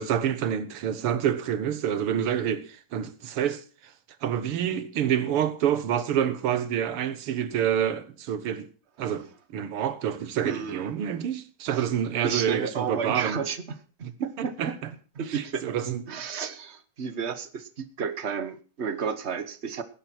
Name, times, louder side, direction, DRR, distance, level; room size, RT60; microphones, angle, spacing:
voice 1, 0.0-3.9 4.2-8.7 9.0-13.4 14.0-14.1 14.6-14.7 15.3-16.0, right 9 dB, 90° right, 2.2 m, -27 dB
voice 2, 10.4-11.3 11.7-11.9 12.2-14.7 15.1-15.7 16.1-19.8, right 6 dB, 35° right, 1.3 m, -32 dB
19.0 x 10.5 x 4.5 m
omnidirectional pair, 2.4 m